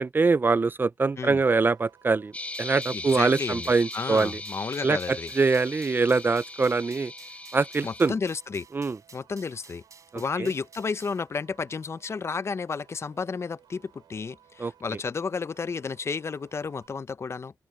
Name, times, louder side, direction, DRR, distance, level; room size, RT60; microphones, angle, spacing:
voice 1, 0.0-2.3 2.6-4.4 4.8-7.1 7.5-8.1 8.7-9.0 10.1-10.5 14.6-14.7, right 4 dB, 30° right, 0.4 m, -24 dB
sound 1, 1.4-16.9, right 9 dB, 80° right, 5.8 m, -60 dB
sound 2, 2.3-8.1, left 2 dB, 20° left, 1.1 m, -39 dB
sound 3, 2.5-11.3, right 5 dB, 50° right, 7.8 m, -53 dB
voice 2, 2.9-5.3 7.8-8.7 9.1-9.8 10.1-17.5, left 5 dB, 40° left, 0.6 m, -32 dB
open air
cardioid pair, 70°, 7 cm